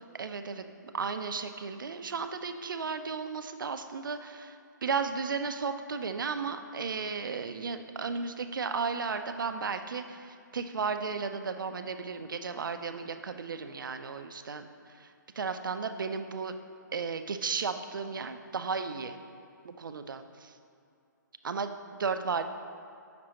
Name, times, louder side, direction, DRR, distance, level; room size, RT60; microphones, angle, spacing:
voice 1, 0.1-14.7 14.9-16.6 16.9-19.2 19.6-20.5 21.4-22.4, right 5 dB, 85° right, 8 dB, 0.5 m, -34 dB
7.5 x 5.9 x 2.9 m, 2.5 s
hypercardioid pair, 150°, 11 cm